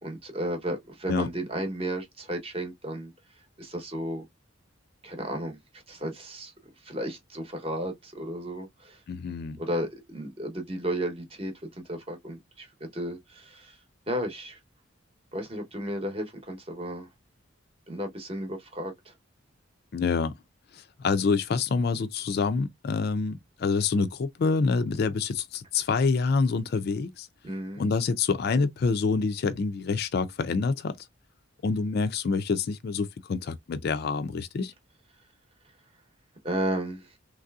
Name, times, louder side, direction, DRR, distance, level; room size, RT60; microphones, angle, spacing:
voice 1, 0.0-3.1 3.6-4.3 5.0-6.5 6.8-9.0 9.6-13.8 14.1-14.6 15.3-17.1 17.9-19.1 27.4-27.8 36.4-37.1, right 1 dB, 30° right, 0.9 m, -33 dB
voice 2, 9.1-9.6 19.9-20.4 20.7-27.3 27.8-31.0 31.6-34.7, left 4 dB, 50° left, 0.3 m, -27 dB
3.2 x 2.6 x 2.3 m
head